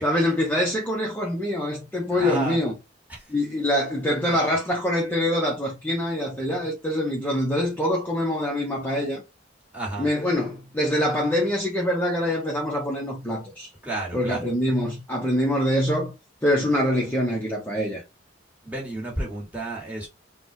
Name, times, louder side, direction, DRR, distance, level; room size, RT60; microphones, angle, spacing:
voice 1, 0.0-2.7 3.3-9.2 10.0-13.7 14.1-16.1 16.4-18.0, left 1 dB, 10° left, 0.7 m, -24 dB
voice 2, 2.1-2.6 3.1-3.2 4.3-4.4 9.7-10.1 13.8-14.4 18.6-20.1, right 2 dB, 10° right, 1.5 m, -31 dB
3.9 x 2.1 x 2.7 m
head